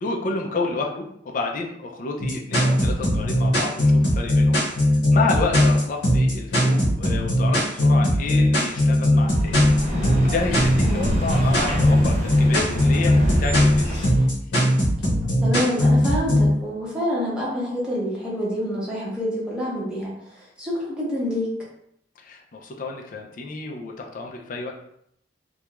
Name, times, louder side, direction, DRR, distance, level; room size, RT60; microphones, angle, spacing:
voice 1, 0.0-4.7 5.1-9.6 9.9-14.1 22.2-24.7, left 3 dB, 50° left, 1 dB, 0.4 m, -30 dB
sound 1, 2.2-16.5, left 1 dB, 85° left, 0.8 m, -19 dB
sound 2, 9.2-14.3, equal, 40° right, 0.7 m, -26 dB
voice 2, 15.4-20.1 20.6-21.5, equal, 5° right, -7 dB, 0.9 m, -27 dB
2.4 x 2.2 x 2.9 m, 0.72 s
head